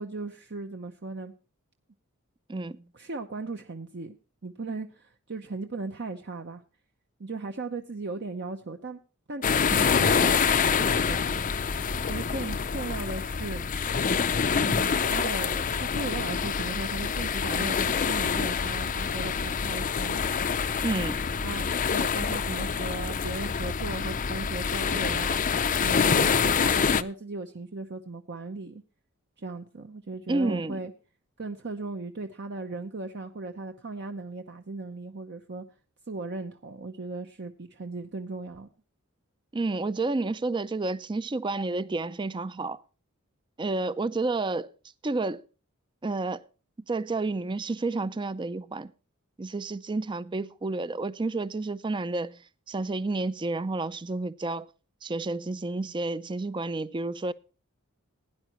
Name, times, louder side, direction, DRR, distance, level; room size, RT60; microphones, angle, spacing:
voice 1, 0.0-1.3 2.9-4.1 4.4-6.6 7.2-9.0 9.3-11.4 12.0-13.7 14.5-20.2 21.4-21.6 21.9-25.4 25.8-28.8 29.4-30.9 31.4-35.6 36.1-38.7, right 3 dB, 50° right, 0.8 m, -37 dB
voice 2, 2.5-2.8 20.8-21.2 30.3-30.8 39.5-42.8 43.6-44.7 45.0-45.4 46.0-46.4 46.9-48.9 49.4-52.4 52.7-54.7 55.0-57.3, right 3 dB, 20° right, 0.4 m, -30 dB
sound 1, 9.4-27.0, left 6 dB, 40° left, 0.5 m, -26 dB
17.0 x 10.0 x 3.0 m
head